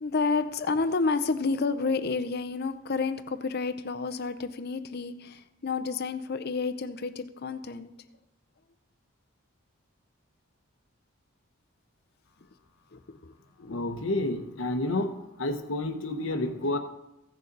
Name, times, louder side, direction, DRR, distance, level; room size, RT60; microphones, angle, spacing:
voice 1, 0.0-7.9 12.9-13.3 13.6-13.8, left 4 dB, 50° left, 10 dB, 0.6 m, -30 dB
voice 2, 13.6-15.1 15.4-16.8, left 2 dB, 65° left, 6 dB, 1.0 m, -29 dB
15.5 x 6.6 x 4.0 m, 0.93 s
head